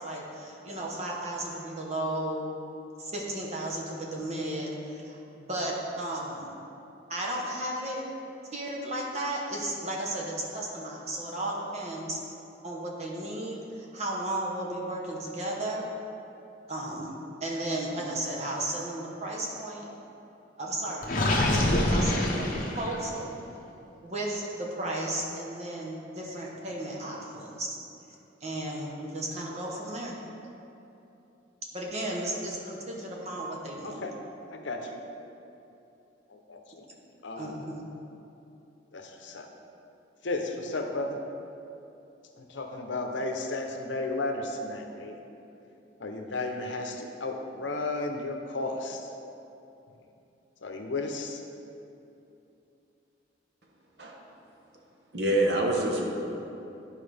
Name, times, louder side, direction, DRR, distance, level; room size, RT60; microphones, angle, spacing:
voice 1, 0.0-2.5 3.0-6.5 7.1-8.0 8.5-12.2 12.6-15.8 16.7-17.1 17.4-19.9 20.6-23.3 24.0-27.8 28.4-30.1 31.7-34.0 37.4-37.9, right 1 dB, 35° right, -3 dB, 1.0 m, -34 dB
Gurgling, 21.0-23.2, left 1 dB, 45° left, 0.9 m, -25 dB
voice 2, 33.8-34.1 34.5-35.0 36.3-36.9 37.2-37.6 38.9-39.5 40.2-41.2 42.4-45.2 46.0-49.1 50.6-51.4, left 2 dB, 75° left, 3 dB, 0.8 m, -34 dB
voice 3, 55.1-56.1, right 1 dB, 60° right, 0 dB, 1.0 m, -25 dB
12.5 x 4.7 x 3.4 m, 2.9 s
head